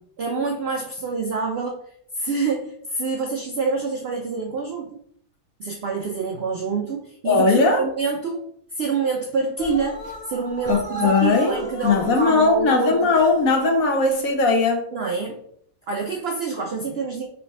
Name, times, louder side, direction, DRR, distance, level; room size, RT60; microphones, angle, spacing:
voice 1, 0.2-1.8 2.2-5.0 5.6-8.4 8.7-13.2 14.9-15.4 15.9-17.3, right 4 dB, 65° right, 1 dB, 0.6 m, -27 dB
voice 2, 7.2-7.8 10.7-14.8, left 3 dB, 65° left, 4 dB, 1.1 m, -19 dB
sound 1, 9.6-12.3 13.0-13.6, right 1 dB, 30° left, 1.0 m, -33 dB
3.2 x 3.2 x 4.1 m, 0.64 s
omnidirectional pair, 1.7 m